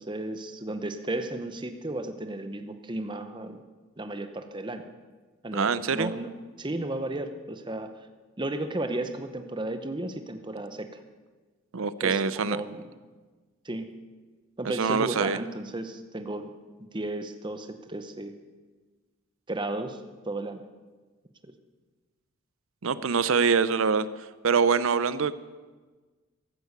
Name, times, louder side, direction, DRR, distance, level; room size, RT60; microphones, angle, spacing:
voice 1, 0.0-3.6 4.0-4.9 5.4-6.3 6.6-7.9 8.4-11.0 12.0-12.9 13.6-13.9 14.6-16.5 16.9-18.3 19.5-20.0 20.3-20.6 21.4-21.5 22.9-23.1, right 2 dB, 20° right, 8 dB, 0.8 m, -34 dB
voice 2, 5.5-6.1 11.7-12.6 14.6-15.4 22.8-24.1 24.4-25.4, right 5 dB, 65° right, 16 dB, 0.6 m, -24 dB
15.0 x 12.0 x 6.7 m, 1.3 s
head